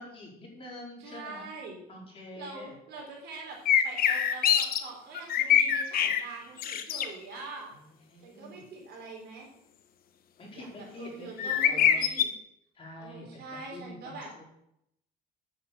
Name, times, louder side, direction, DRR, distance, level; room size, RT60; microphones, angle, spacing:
voice 1, 0.0-1.5 1.9-2.8 7.7-7.8 8.1-8.6 10.4-12.0 12.7-13.4 13.7-14.4, left 2 dB, 35° left, -3 dB, 4.5 m, -46 dB
voice 2, 1.0-1.8 2.3-3.6 3.8-7.7 8.2-9.5 10.5-12.3 13.0-14.3, right 3 dB, 75° right, -1 dB, 4.3 m, -44 dB
sound 1, 3.7-4.8 5.1-6.2 6.6-7.1 11.4-12.2, left 9 dB, 60° left, 1.1 m, -24 dB
8.8 x 7.7 x 6.8 m, 0.77 s
cardioid pair, 110°, 17 cm